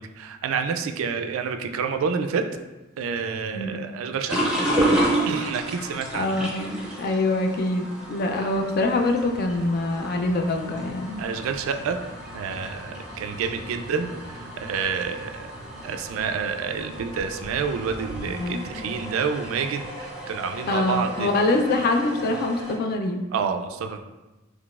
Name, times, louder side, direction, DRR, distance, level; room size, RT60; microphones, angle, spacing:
voice 1, 0.0-2.4 3.0-4.5 5.3-6.4 8.4-8.5 11.2-12.0 12.3-15.5 15.8-21.3 23.3-24.0, right 6 dB, 70° right, 8 dB, 0.3 m, -28 dB
sound 1, 4.3-22.8, right 1 dB, 5° right, 0.6 m, -32 dB
voice 2, 6.1-11.2 18.3-18.6 20.7-23.3, left 2 dB, 50° left, 4 dB, 0.3 m, -24 dB
3.8 x 3.0 x 2.4 m, 1.1 s
head